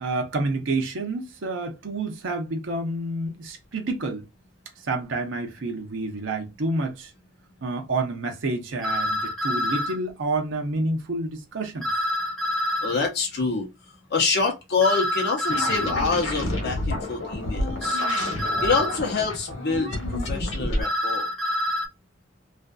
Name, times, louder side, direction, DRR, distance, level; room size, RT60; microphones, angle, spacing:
voice 1, 0.0-4.2 4.9-7.1 7.6-11.9, right 2 dB, 85° right, 0.6 m, -29 dB
sound 1, 8.8-9.9 11.8-12.9 14.8-16.0 17.8-19.0 20.8-21.9, left 1 dB, 5° left, 0.7 m, -26 dB
voice 2, 12.8-13.7 14.1-18.0 18.6-21.3, left 4 dB, 60° left, 0.7 m, -26 dB
sound 2, 15.5-20.8, left 1 dB, 85° left, 1.0 m, -29 dB
2.5 x 2.4 x 2.2 m
head